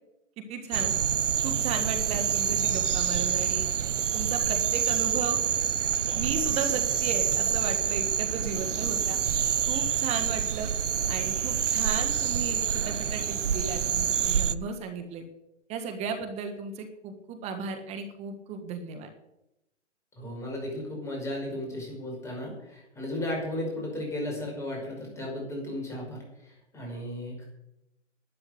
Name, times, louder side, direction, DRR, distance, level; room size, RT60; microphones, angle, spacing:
voice 1, 0.4-0.9 1.4-3.7 4.1-5.4 6.1-9.2 9.7-10.7 11.1-15.2 15.7-19.1, right 5 dB, 20° right, 7 dB, 1.4 m, -35 dB
sound 1, 0.7-14.6, right 8 dB, 80° right, 0.7 m, -27 dB
voice 2, 20.2-27.4, left 1 dB, 10° left, -1 dB, 5.6 m, -35 dB
12.0 x 8.8 x 9.4 m, 0.90 s
hypercardioid pair, 140°, 36 cm